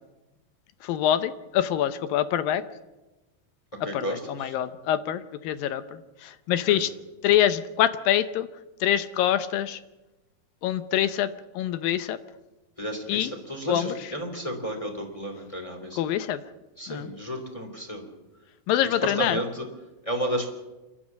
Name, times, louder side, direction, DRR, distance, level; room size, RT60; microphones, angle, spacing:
voice 1, 0.8-2.6 3.9-5.8 6.2-6.9 7.2-8.5 8.8-9.8 10.6-12.2 13.1-13.3 13.7-13.9 16.0-16.4 16.9-17.1 18.7-19.4, left 11 dB, 75° left, 13 dB, 2.2 m, -25 dB
voice 2, 3.8-4.5 6.7-6.8 12.8-16.0 16.8-18.0 19.0-19.7 20.0-20.5, equal, 10° left, 2 dB, 2.6 m, -32 dB
28.5 x 12.5 x 7.5 m, 1.1 s
omnidirectional pair, 4.8 m